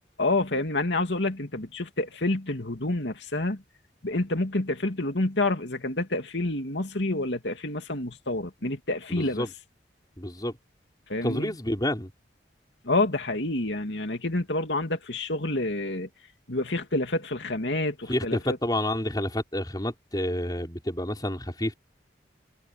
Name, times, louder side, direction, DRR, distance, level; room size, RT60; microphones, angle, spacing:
voice 1, 0.2-3.6 4.0-9.4 11.1-11.5 12.8-16.1 16.5-18.6, left 2 dB, 75° left, 2.7 m, -28 dB
voice 2, 9.1-9.5 10.2-10.5 11.2-12.1 18.1-21.7, left 1 dB, 20° left, 4.7 m, -29 dB
head